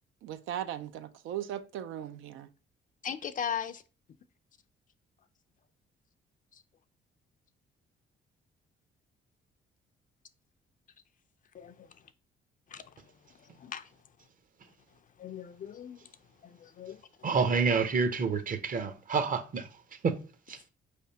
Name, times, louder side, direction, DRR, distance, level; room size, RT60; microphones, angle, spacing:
voice 1, 0.2-2.5, right 11 dB, 85° right, 0.4 m, -38 dB
voice 2, 3.0-3.8 6.5-6.6 11.5-11.9 12.7-12.9 13.4-13.9 15.2-16.1 16.4-17.3, left 8 dB, 40° left, 0.4 m, -39 dB
voice 3, 17.2-19.7 20.0-20.2 20.5-20.7, right 5 dB, 45° right, 0.7 m, -28 dB
4.9 x 3.3 x 2.7 m
cardioid pair, 90°, 20 cm